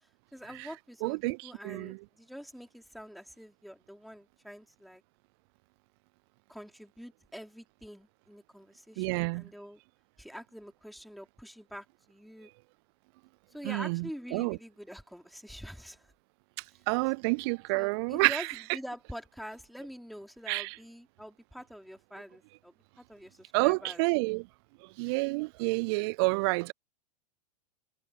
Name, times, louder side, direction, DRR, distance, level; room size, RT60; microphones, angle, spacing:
voice 1, 0.3-5.0 6.5-9.8 10.2-12.5 13.5-16.1 17.7-24.0, equal, ahead, 4.8 m, -46 dB
voice 2, 1.0-2.0 9.0-9.5 13.6-14.0 14.3-14.6 16.9-18.5 20.5-20.7 23.5-24.5 25.0-26.7, right 29 dB, 40° right, 0.4 m, -29 dB
figure-of-eight pair, 100°, 21 cm